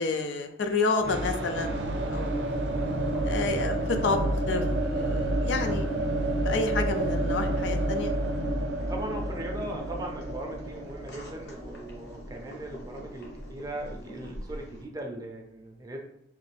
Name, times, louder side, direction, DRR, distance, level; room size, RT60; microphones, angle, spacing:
voice 1, 0.0-2.5 3.2-4.2 4.5-5.9 6.4-8.1, left 4 dB, 90° left, 7 dB, 0.4 m, -30 dB
sound 1, 1.0-12.8, right 1 dB, 85° right, 0.5 m, -29 dB
Boiling, 2.1-14.8, equal, 65° left, 0.8 m, -45 dB
voice 2, 8.9-16.0, right 1 dB, 20° right, 1 dB, 0.4 m, -39 dB
3.2 x 2.5 x 3.2 m, 0.79 s
head